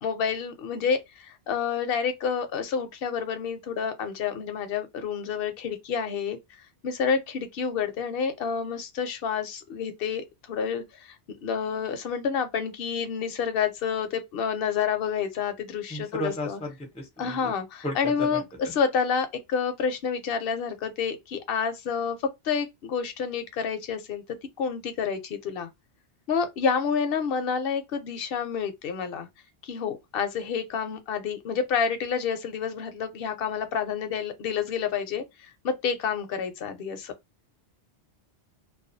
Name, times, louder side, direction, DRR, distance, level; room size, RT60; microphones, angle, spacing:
voice 1, 0.0-6.4 6.8-11.2 11.4-16.6 17.2-18.4 18.7-22.2 22.4-24.2 24.6-25.7 26.3-29.3 29.6-37.1, left 6 dB, 65° left, 0.7 m, -29 dB
voice 2, 15.9-17.5 17.8-18.7, left 1 dB, 10° left, 0.5 m, -35 dB
2.3 x 2.2 x 2.5 m
omnidirectional pair, 1.2 m